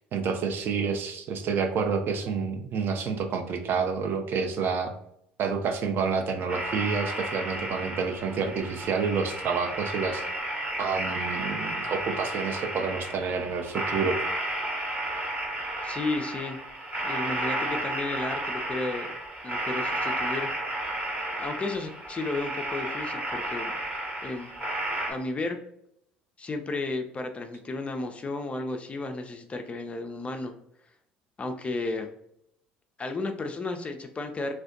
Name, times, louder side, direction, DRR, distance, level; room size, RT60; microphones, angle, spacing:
voice 1, 0.1-4.9 5.4-10.2 10.8-14.2, right 5 dB, 45° right, 5 dB, 0.4 m, -29 dB
sound 1, 6.5-25.1, right 1 dB, 30° right, 0.8 m, -32 dB
voice 2, 15.8-16.6 17.0-19.1 19.4-20.5 21.4-23.8 24.2-24.5 25.1-25.6 26.4-30.5 31.4-32.1 33.0-34.5, left 3 dB, 25° left, 5 dB, 0.3 m, -33 dB
2.4 x 2.1 x 2.5 m, 0.74 s
figure-of-eight pair, 60°, 5 cm